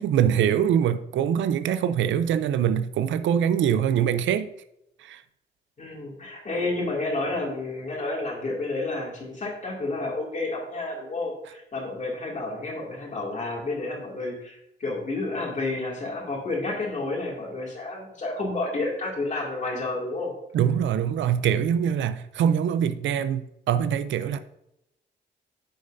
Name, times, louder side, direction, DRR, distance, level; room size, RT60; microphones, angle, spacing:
voice 1, 0.0-4.5 5.0-5.2 20.5-24.4, right 9 dB, 80° right, 0.5 m, -23 dB
voice 2, 5.8-20.3, left 2 dB, 40° left, 2.3 m, -30 dB
9.4 x 6.5 x 2.6 m
cardioid pair, 110°, 19 cm